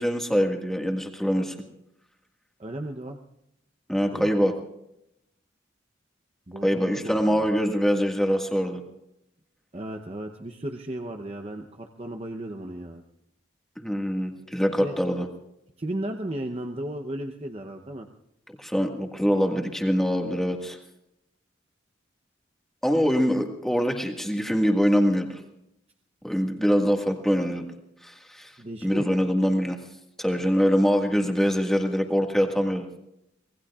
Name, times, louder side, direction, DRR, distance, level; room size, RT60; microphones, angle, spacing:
voice 1, 0.0-1.6 3.9-4.5 6.6-8.8 13.8-15.3 18.6-20.8 22.8-25.4 26.2-27.6 28.0-28.5 28.8-29.8 30.2-32.9, equal, ahead, 2 dB, 1.7 m, -24 dB
voice 2, 2.6-3.2 4.1-4.3 6.5-7.5 9.7-13.0 14.7-15.0 15.8-18.1 28.6-29.2, right 1 dB, 30° right, 3 dB, 0.8 m, -35 dB
25.5 x 19.5 x 2.4 m, 0.83 s
head